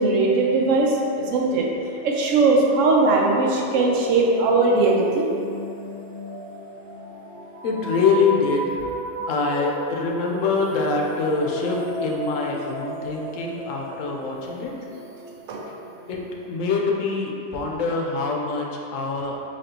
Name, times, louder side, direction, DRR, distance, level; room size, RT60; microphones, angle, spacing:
voice 1, 0.0-1.7 2.0-5.3 15.5-15.6, right 3 dB, 85° right, -1 dB, 1.0 m, -19 dB
sound 1, 3.6-16.3, equal, 50° left, 1.1 m, -34 dB
voice 2, 7.6-8.9 9.3-14.7 15.7-15.8 16.1-16.2 16.5-19.4, left 4 dB, 85° left, -1 dB, 1.0 m, -24 dB
4.1 x 3.0 x 2.7 m, 2.7 s
omnidirectional pair, 1.3 m